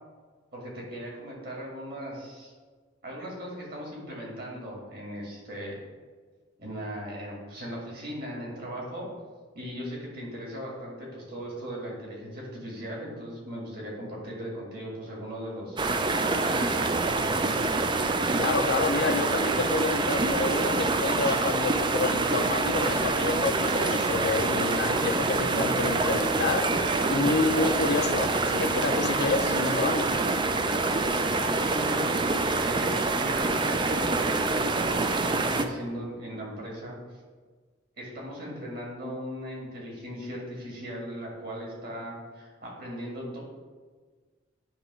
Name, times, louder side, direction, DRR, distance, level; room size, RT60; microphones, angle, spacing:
voice 1, 0.5-2.5 3.0-5.8 6.6-9.1 9.5-15.9 16.2-17.7 31.3-32.1 32.6-36.9 38.0-43.4, equal, 50° right, -3 dB, 2.1 m, -38 dB
sound 1, 15.8-35.7, right 3 dB, 25° right, 0.3 m, -26 dB
voice 2, 18.4-26.7 27.1-30.1, left 3 dB, 50° left, 6 dB, 0.5 m, -28 dB
8.6 x 3.0 x 6.1 m, 1.5 s
head